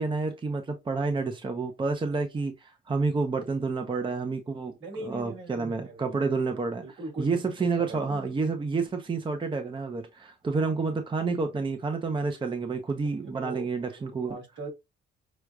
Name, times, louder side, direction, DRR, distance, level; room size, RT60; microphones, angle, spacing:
voice 1, 0.0-4.7 5.0-14.4, right 4 dB, 25° right, 0.7 m, -29 dB
voice 2, 4.8-6.2 6.8-8.3 13.4-13.7 14.0-14.7, right 2 dB, 70° right, 2.5 m, -41 dB
6.2 x 2.3 x 2.3 m
cardioid pair, 90°, 20 cm